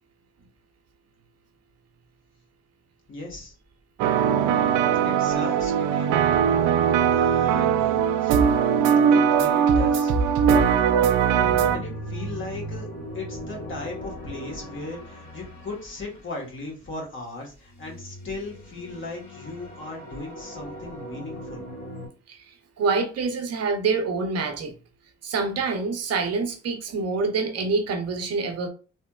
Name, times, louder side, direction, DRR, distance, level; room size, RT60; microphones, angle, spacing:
voice 1, 3.1-3.5 5.0-6.2 7.1-8.4 9.1-10.1 11.7-21.6, left 2 dB, 40° left, 1.3 m, -37 dB
sound 1, 4.0-11.8, right 7 dB, 90° right, 0.5 m, -20 dB
sound 2, 11.4-16.7 17.6-22.1, equal, 80° left, 1.4 m, -39 dB
voice 2, 22.8-24.7 25.2-28.7, right 4 dB, 55° right, 0.7 m, -26 dB
3.1 x 2.9 x 2.2 m
cardioid pair, 90°, 30 cm